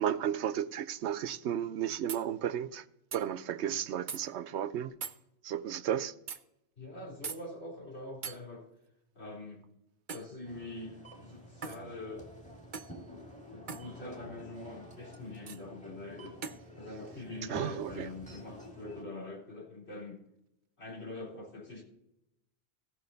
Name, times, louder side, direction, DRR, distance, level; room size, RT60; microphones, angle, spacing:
voice 1, 0.0-2.8 3.1-4.9 5.4-6.1 17.5-18.1, right 10 dB, 90° right, 0.9 m, -33 dB
sound 1, 2.1-2.3 3.1-3.2 4.1-4.2 5.0-5.2 6.3-6.4 7.2-7.4 8.2-8.4 10.1-10.3 11.6-11.8 12.7-13.0 13.7-13.9 15.5-15.6 16.4-16.6, right 6 dB, 50° right, 0.8 m, -40 dB
voice 2, 6.8-8.7 9.1-9.6 10.1-12.3 13.5-16.4 16.7-20.2 20.8-21.8, left 2 dB, 75° left, 3.9 m, -44 dB
sound 2, 10.4-19.0, equal, 5° left, 2.2 m, -50 dB
16.0 x 6.3 x 3.9 m
omnidirectional pair, 1.1 m